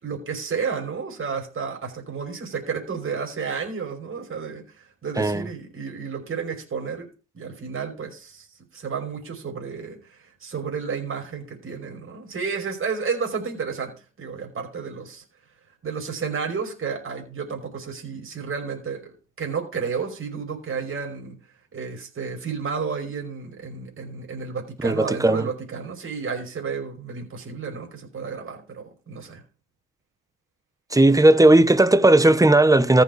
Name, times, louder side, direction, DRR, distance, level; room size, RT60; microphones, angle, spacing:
voice 1, 0.0-8.5 8.7-15.2 15.8-19.1 19.4-21.4 21.7-29.4, right 5 dB, 45° right, 5.5 m, -31 dB
voice 2, 24.8-25.5 30.9-33.0, right 2 dB, 10° right, 0.9 m, -16 dB
14.5 x 6.9 x 4.8 m
cardioid pair, 90°, 30 cm